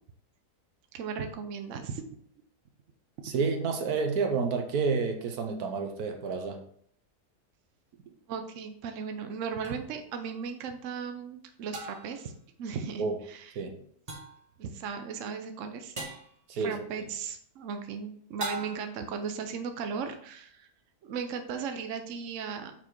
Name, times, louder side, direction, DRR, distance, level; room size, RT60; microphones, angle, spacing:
voice 1, 0.9-2.2 8.3-12.3 12.6-13.5 14.6-15.9 16.5-20.7 21.0-22.7, right 6 dB, 60° right, 6 dB, 1.0 m, -36 dB
voice 2, 3.2-6.6 13.0-13.2 13.5-13.8 16.5-16.8, right 4 dB, 80° right, 4 dB, 1.4 m, -29 dB
sound 1, 9.6-9.8 11.7-12.2 14.1-14.4 16.0-16.3 18.4-19.0, right 2 dB, 25° right, 1.4 m, -38 dB
5.7 x 4.5 x 4.6 m, 0.63 s
omnidirectional pair, 1.6 m